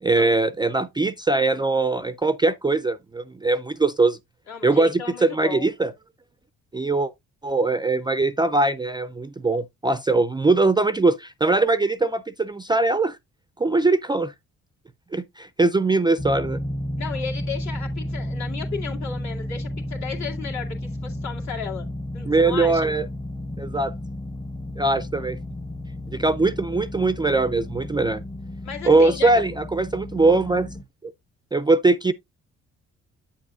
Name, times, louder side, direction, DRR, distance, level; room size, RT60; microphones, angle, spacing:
voice 1, 0.0-4.2 4.6-5.9 6.7-7.1 7.4-13.2 13.6-14.3 15.1-16.6 22.3-23.1 23.6-23.9 24.8-25.4 26.1-28.2 28.8-30.7 31.0-31.1 31.5-32.1, right 3 dB, 15° right, 0.3 m, -21 dB
voice 2, 4.5-5.7 17.0-21.9 22.1-22.9 28.6-29.3, left 6 dB, 65° left, 2.2 m, -34 dB
sound 1, 16.2-30.8, left 1 dB, 15° left, 0.7 m, -32 dB
8.5 x 7.2 x 2.4 m
cardioid pair, 90°, 30 cm